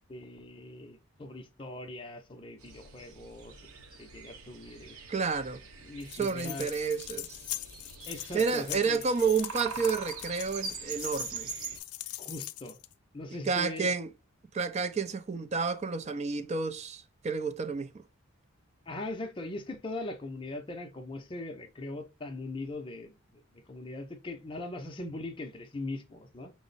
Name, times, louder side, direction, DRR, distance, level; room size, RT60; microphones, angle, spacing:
voice 1, 0.1-3.7 4.0-4.9 5.8-6.7 8.1-9.0 12.2-12.8 13.1-13.9 18.9-23.4 23.7-26.5, left 2 dB, 25° left, 0.5 m, -40 dB
sound 1, 2.6-11.8, right 5 dB, 85° right, 0.7 m, -43 dB
voice 2, 5.1-5.6 6.1-7.4 8.3-11.5 13.5-14.1 14.5-18.0, right 5 dB, 30° right, 0.4 m, -30 dB
sound 2, 6.0-12.9, left 15 dB, 80° left, 0.4 m, -42 dB
6.0 x 2.0 x 3.9 m
head